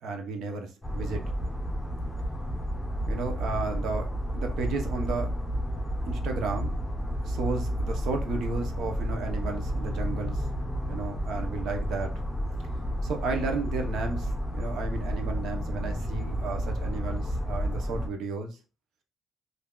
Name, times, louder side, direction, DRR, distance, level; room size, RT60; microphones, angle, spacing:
voice 1, 0.0-1.2 3.1-5.3 6.1-6.8 7.2-10.5 10.9-12.1 13.0-18.6, right 3 dB, 80° right, 4 dB, 0.8 m, -33 dB
sound 1, 0.8-18.1, equal, 10° left, 0.9 m, -31 dB
3.5 x 2.7 x 2.3 m, 0.32 s
cardioid pair, 90°, 0 cm